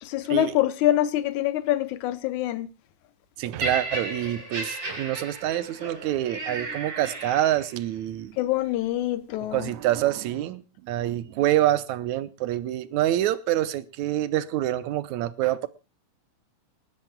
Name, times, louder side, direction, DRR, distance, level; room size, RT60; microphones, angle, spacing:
voice 1, 0.0-2.7 8.4-9.7, left 13 dB, 85° left, 2.3 m, -25 dB
voice 2, 3.4-8.3 9.5-15.7, right 13 dB, 80° right, 2.2 m, -26 dB
Laughter, 3.6-7.8 8.6-8.8, right 2 dB, 30° right, 5.3 m, -34 dB
28.0 x 11.0 x 2.3 m
omnidirectional pair, 3.3 m